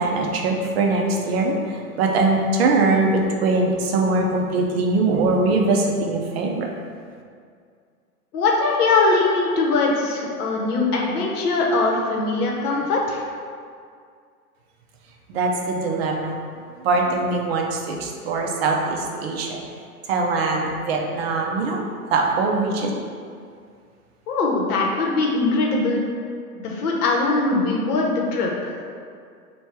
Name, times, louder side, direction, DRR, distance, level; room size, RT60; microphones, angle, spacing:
voice 1, 0.0-6.7 15.3-16.4 16.8-19.6 20.1-21.8 22.1-23.1, right 3 dB, 45° right, 1 dB, 0.5 m, -22 dB
voice 2, 8.3-13.2 24.3-26.0 26.6-28.5, left 3 dB, 75° left, -2 dB, 0.9 m, -21 dB
3.1 x 2.3 x 4.2 m, 2.2 s
hypercardioid pair, 140°, 45 cm